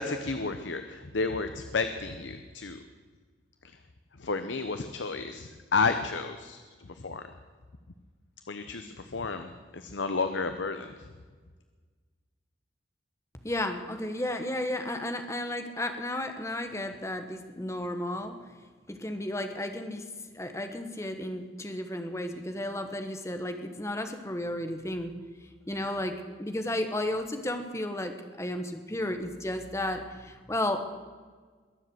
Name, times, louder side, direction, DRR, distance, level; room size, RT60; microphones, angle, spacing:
voice 1, 0.0-2.8 4.2-7.2 8.5-10.9, left 4 dB, 75° left, 9 dB, 0.8 m, -32 dB
voice 2, 13.4-18.4 18.9-20.0 20.3-25.1 25.7-28.1 28.4-30.8, left 1 dB, 15° left, 6 dB, 1.2 m, -33 dB
22.0 x 7.6 x 7.9 m, 1.5 s
head